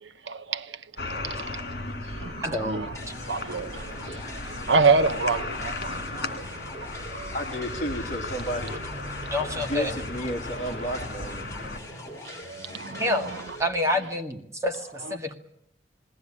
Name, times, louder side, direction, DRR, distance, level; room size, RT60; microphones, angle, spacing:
voice 1, 0.0-0.8 1.2-1.6 2.1-2.9 3.3-6.7 12.2-12.3 12.6-13.4, right 4 dB, 85° right, 1.1 m, -27 dB
sound 1, 1.0-11.8, left 2 dB, 60° left, 3.6 m, -36 dB
voice 2, 2.4-3.1 8.7-8.8 9.3-9.9 12.9-13.3 13.6-15.3, left 1 dB, 15° right, 2.1 m, -28 dB
sound 2, 2.9-13.6, left 1 dB, 15° left, 5.3 m, -42 dB
voice 3, 7.3-8.8 9.5-11.4, equal, 40° left, 2.8 m, -32 dB
20.5 x 18.5 x 9.9 m
head